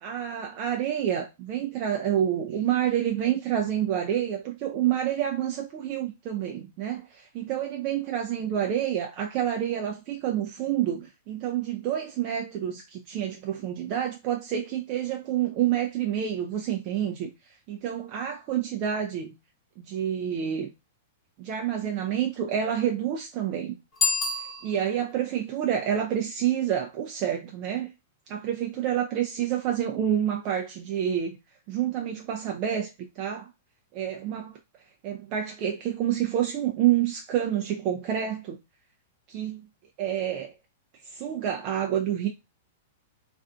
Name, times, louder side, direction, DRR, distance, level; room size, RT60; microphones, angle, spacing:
voice 1, 0.0-17.3 17.7-19.3 19.8-20.7 21.4-23.8 24.6-27.9 28.3-31.4 31.7-32.9 33.2-33.5 33.9-34.5 35.0-38.6 39.3-39.6 40.0-40.5 41.0-42.3, right 10 dB, 45° right, 0.4 m, -28 dB
Bicycle bell, 23.9-25.2, left 4 dB, 25° left, 1.1 m, -28 dB
2.4 x 2.4 x 2.4 m
hypercardioid pair, 105°, 0 cm